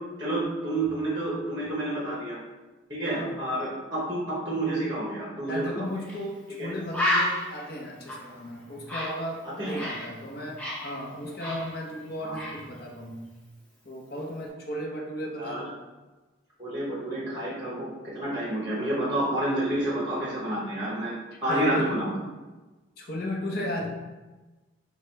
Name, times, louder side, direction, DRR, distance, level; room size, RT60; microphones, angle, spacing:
voice 1, 0.2-2.4 2.9-5.9 6.6-6.7 9.4-9.8 12.2-12.4 15.4-15.6 16.6-21.1 21.4-22.2, right 1 dB, 20° right, -5 dB, 0.9 m, -29 dB
voice 2, 3.1-3.4 5.5-13.3 13.8-15.8 21.5-22.0 23.0-23.9, left 1 dB, 50° left, 0 dB, 0.8 m, -35 dB
Bird, 6.1-6.2 6.5-6.6 6.9-10.1 10.4-12.1 12.3-12.6, left 1 dB, 5° left, 0.7 m, -31 dB
4.8 x 2.3 x 4.5 m, 1.2 s
head